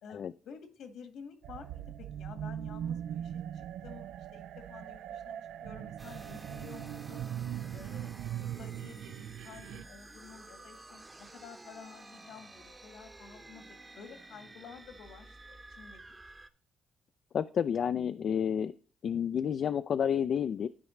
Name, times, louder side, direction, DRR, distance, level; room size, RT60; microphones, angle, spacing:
voice 1, 0.0-7.3 7.7-16.2, left 6 dB, 80° left, 8 dB, 1.7 m, -51 dB
sound 1, 1.4-9.9, right 10 dB, 80° right, 0.3 m, -40 dB
sound 2, 6.0-16.5, right 2 dB, 20° right, 0.9 m, -52 dB
voice 2, 17.3-18.7 19.0-20.7, left 8 dB, 60° left, 12 dB, 0.3 m, -30 dB
12.5 x 4.8 x 3.1 m, 0.43 s
cardioid pair, 90°, 0 cm